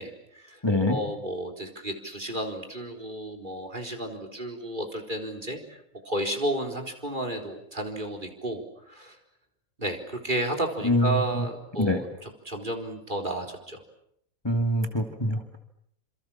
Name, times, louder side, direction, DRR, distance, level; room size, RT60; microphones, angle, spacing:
voice 1, 0.0-0.6 0.9-5.8 6.0-9.2 9.8-13.8, right 1 dB, 35° right, 4 dB, 4.4 m, -32 dB
voice 2, 0.6-1.0 10.8-11.4 11.8-12.0 14.4-15.6, left 1 dB, 20° left, 5 dB, 2.5 m, -25 dB
29.0 x 27.5 x 7.4 m, 0.71 s
omnidirectional pair, 1.4 m